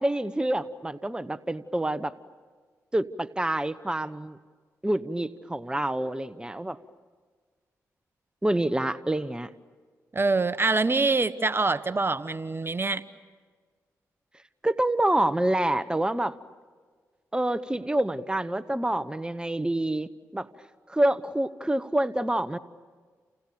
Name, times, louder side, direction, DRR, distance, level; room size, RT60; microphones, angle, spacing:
voice 1, 0.0-2.1 2.9-4.4 4.8-6.8 8.4-9.5 14.6-16.3 17.3-20.5 20.9-22.6, right 1 dB, 10° right, 13 dB, 1.1 m, -27 dB
voice 2, 10.1-13.0, right 3 dB, 35° right, 14 dB, 1.1 m, -25 dB
29.5 x 28.5 x 7.0 m, 1.5 s
supercardioid pair, 45°, 7 cm